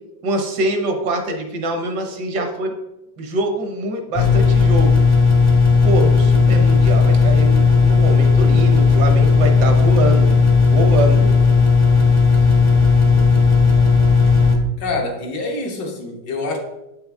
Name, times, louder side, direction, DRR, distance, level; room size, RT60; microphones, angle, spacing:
voice 1, 0.2-2.7 3.2-5.0 5.8-11.3, right 1 dB, 70° right, 4 dB, 1.6 m, -24 dB
sound 1, 4.2-14.6, left 4 dB, 30° left, 0.6 m, -14 dB
voice 2, 14.8-16.6, left 3 dB, 80° left, 1 dB, 1.8 m, -26 dB
7.6 x 5.4 x 3.4 m, 0.92 s
omnidirectional pair, 1.9 m